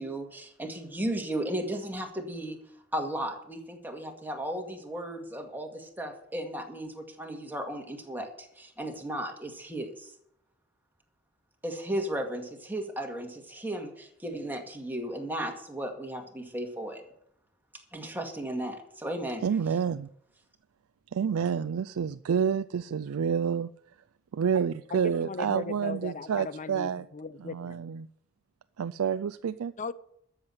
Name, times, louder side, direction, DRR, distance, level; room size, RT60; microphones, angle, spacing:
voice 1, 0.0-2.6 2.9-10.1 11.6-17.0 17.9-19.4, right 1 dB, 10° right, 2 dB, 2.0 m, -35 dB
voice 2, 19.4-20.1 21.1-23.7 24.3-27.1 27.4-28.1 28.8-29.7, right 7 dB, 90° right, 12 dB, 0.4 m, -29 dB
voice 3, 24.9-27.8 29.8-29.9, left 4 dB, 35° left, 16 dB, 0.6 m, -38 dB
13.0 x 7.3 x 8.1 m, 0.72 s
head